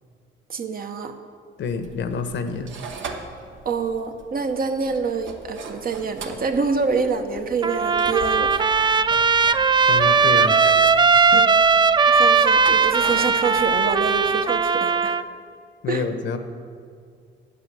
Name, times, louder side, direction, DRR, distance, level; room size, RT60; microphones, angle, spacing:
voice 1, 0.5-1.2 3.6-8.5 11.3-11.5 12.1-15.2 15.9-16.0, right 5 dB, 45° right, 6 dB, 1.0 m, -26 dB
voice 2, 1.6-2.7 9.9-10.7 11.3-11.4 15.8-16.4, left 5 dB, 70° left, 8 dB, 1.0 m, -28 dB
sound 1, 1.6-14.3, right 4 dB, 70° right, 1.2 m, -41 dB
Trumpet, 7.6-15.2, right 5 dB, 25° right, 0.3 m, -18 dB
8.9 x 8.2 x 7.6 m, 2.2 s
cardioid pair, 90°, 20 cm